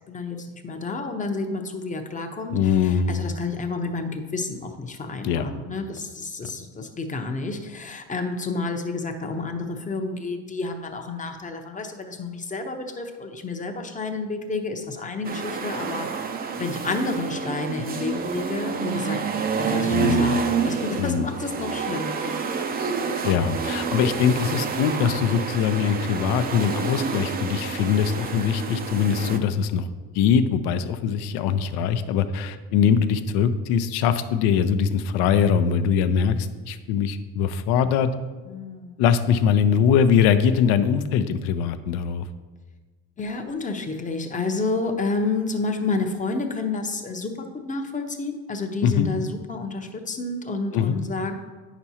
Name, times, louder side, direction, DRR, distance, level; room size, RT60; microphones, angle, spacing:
voice 1, 0.1-16.3 16.6-22.2 29.1-29.6 38.5-39.0 43.2-51.3, left 3 dB, 20° left, 5 dB, 0.7 m, -30 dB
voice 2, 2.5-3.2 5.2-5.4 19.9-20.4 21.0-21.3 23.2-29.9 30.1-38.1 39.0-42.3 48.8-49.1 50.7-51.0, left 7 dB, 75° left, 11 dB, 0.6 m, -22 dB
sound 1, 15.2-29.4, right 5 dB, 25° right, 0.5 m, -28 dB
8.7 x 6.0 x 2.8 m, 1.3 s
supercardioid pair, 100°, 38 cm